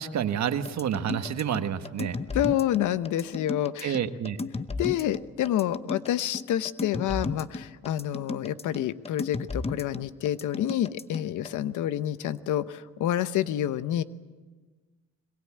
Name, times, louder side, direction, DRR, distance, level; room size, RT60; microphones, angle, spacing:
voice 1, 0.0-2.2 3.8-4.4, right 9 dB, 65° right, 9 dB, 1.4 m, -29 dB
sound 1, 0.7-11.5, left 3 dB, 20° left, 0.9 m, -34 dB
voice 2, 2.3-4.0 4.8-14.0, left 12 dB, 80° left, 14 dB, 0.9 m, -28 dB
22.5 x 22.0 x 8.7 m, 1.3 s
cardioid pair, 90°, 30 cm